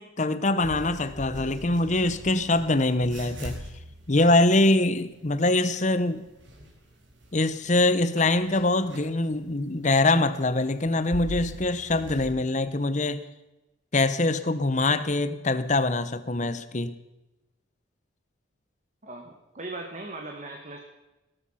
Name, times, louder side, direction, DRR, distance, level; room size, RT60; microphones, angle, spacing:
voice 1, 0.0-3.6 4.1-6.2 7.3-13.2 13.9-16.9, left 2 dB, 40° left, 13 dB, 1.0 m, -24 dB
sound 1, 0.6-12.3, equal, 70° right, 5.0 m, -43 dB
voice 2, 19.0-20.8, right 2 dB, 40° right, 2 dB, 1.8 m, -39 dB
18.0 x 13.0 x 5.8 m, 1.0 s
head